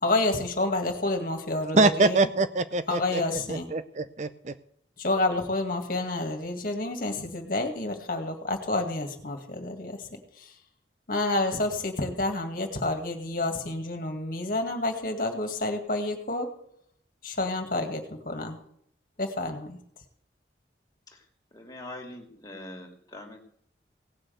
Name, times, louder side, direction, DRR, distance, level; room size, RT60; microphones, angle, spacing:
voice 1, 0.0-2.3 2.9-3.7 5.0-10.6 11.1-16.5 17.2-18.6 19.2-19.8, left 2 dB, 50° left, 4 dB, 2.1 m, -29 dB
voice 2, 1.7-3.0 3.7-4.5, right 3 dB, 40° right, 12 dB, 0.6 m, -23 dB
voice 3, 21.5-23.4, left 1 dB, 20° left, 0 dB, 2.6 m, -43 dB
17.5 x 6.4 x 8.0 m, 0.68 s
head